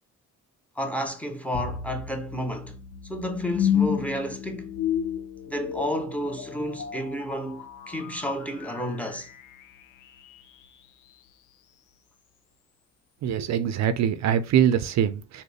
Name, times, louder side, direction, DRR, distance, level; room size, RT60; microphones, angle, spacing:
voice 1, 0.8-2.8 3.1-4.7 5.5-9.3, equal, 5° left, 0.7 m, -31 dB
sound 1, 1.5-10.7, left 9 dB, 80° left, 0.5 m, -32 dB
voice 2, 13.2-15.4, right 9 dB, 65° right, 0.5 m, -23 dB
3.9 x 2.1 x 3.4 m
cardioid pair, 90°, 30 cm